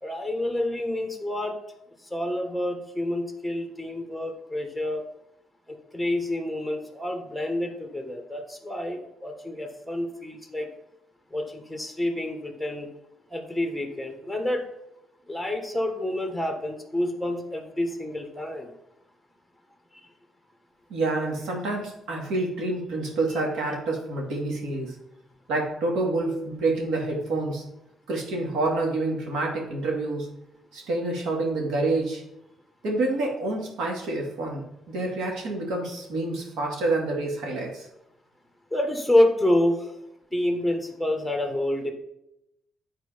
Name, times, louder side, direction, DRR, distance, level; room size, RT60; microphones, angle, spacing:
voice 1, 0.0-1.5 2.1-5.0 5.7-10.7 11.3-12.9 13.3-14.6 15.3-18.7 19.9-20.0 38.7-39.9 40.3-41.9, left 1 dB, ahead, 4 dB, 1.3 m, -28 dB
voice 2, 20.9-25.0 25.5-27.6 28.1-30.3 30.7-32.2 32.8-37.9, right 2 dB, 85° right, -1 dB, 2.2 m, -28 dB
9.1 x 4.4 x 5.0 m, 0.84 s
cardioid pair, 90°, 0 cm